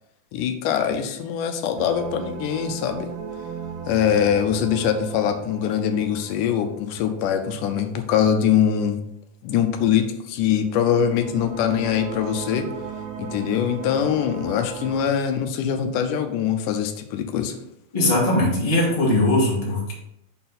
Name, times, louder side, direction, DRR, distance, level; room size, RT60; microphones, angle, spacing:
voice 1, 0.3-3.1 3.9-9.0 9.4-12.7 13.2-17.6, left 8 dB, 85° left, 7 dB, 2.2 m, -23 dB
sound 1, 1.8-7.8 10.6-15.0, right 6 dB, 90° right, 2.4 m, -36 dB
voice 2, 17.9-19.9, left 1 dB, 15° left, -5 dB, 1.4 m, -20 dB
6.6 x 4.3 x 4.0 m, 0.79 s
omnidirectional pair, 3.6 m